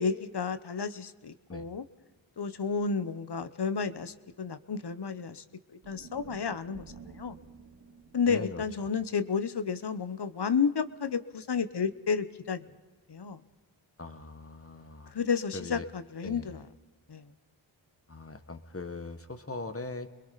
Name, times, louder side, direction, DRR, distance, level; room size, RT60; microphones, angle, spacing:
voice 1, 0.0-1.8 2.4-5.4 5.7-6.8 7.2-7.4 8.1-12.7 13.1-13.4 15.1-16.6 17.1-17.3, left 5 dB, 55° left, 12 dB, 1.0 m, -31 dB
sound 1, 5.8-10.1, right 4 dB, 50° right, 2.3 m, -52 dB
voice 2, 8.3-8.9 14.0-15.1 15.5-15.9 16.2-16.7 18.1-20.1, left 3 dB, 30° left, 9 dB, 1.5 m, -41 dB
29.5 x 22.0 x 4.1 m, 1.4 s
cardioid pair, 45°, 49 cm